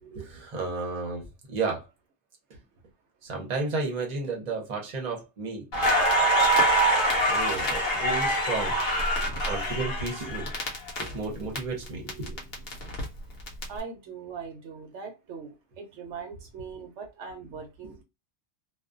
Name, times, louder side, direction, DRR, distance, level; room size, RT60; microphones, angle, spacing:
voice 1, 0.0-1.9 2.5-2.6 3.2-5.7 6.8-8.8 9.2-10.5 11.1-12.5 17.8-17.9, right 4 dB, 40° right, 0.9 m, -33 dB
Crackle, 5.7-11.6 11.9-13.6, right 1 dB, 60° left, 0.9 m, -25 dB
voice 2, 13.7-18.0, right 5 dB, 80° right, 1.0 m, -40 dB
2.4 x 2.3 x 2.5 m
omnidirectional pair, 1.2 m